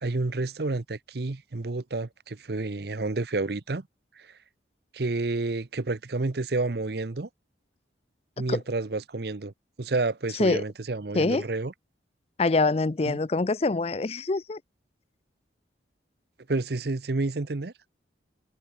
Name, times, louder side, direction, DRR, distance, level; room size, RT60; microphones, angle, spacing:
voice 1, 0.0-3.9 4.2-4.4 4.9-7.3 8.4-9.5 9.8-11.7 13.1-13.2 16.5-17.7, right 3 dB, 55° right, 0.8 m, -30 dB
voice 2, 12.4-14.6, left 3 dB, 35° left, 0.5 m, -24 dB
head